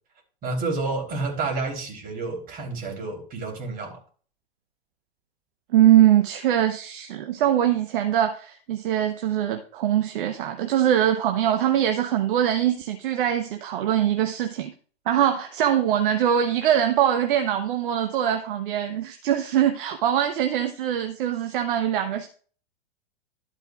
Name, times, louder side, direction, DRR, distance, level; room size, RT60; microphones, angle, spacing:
voice 1, 0.4-4.0, right 3 dB, 25° right, 3.5 m, -29 dB
voice 2, 5.7-14.7 15.1-22.3, right 10 dB, 55° right, 1.0 m, -22 dB
12.5 x 8.0 x 2.4 m
figure-of-eight pair, 110°, 32 cm